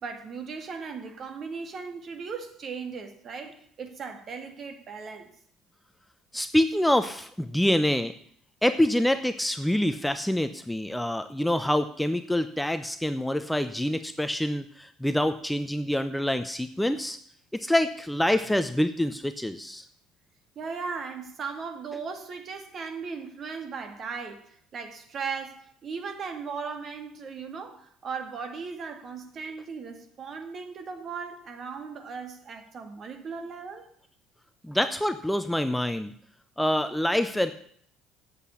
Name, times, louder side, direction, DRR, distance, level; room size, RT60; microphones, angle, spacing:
voice 1, 0.0-5.3 20.6-33.8, right 5 dB, 45° right, 5 dB, 2.2 m, -37 dB
voice 2, 6.3-8.1 8.6-17.2 17.5-19.8 34.6-36.1 36.6-37.5, left 1 dB, 5° left, 10 dB, 0.7 m, -26 dB
8.3 x 8.1 x 8.4 m, 0.63 s
hypercardioid pair, 60°, 0 cm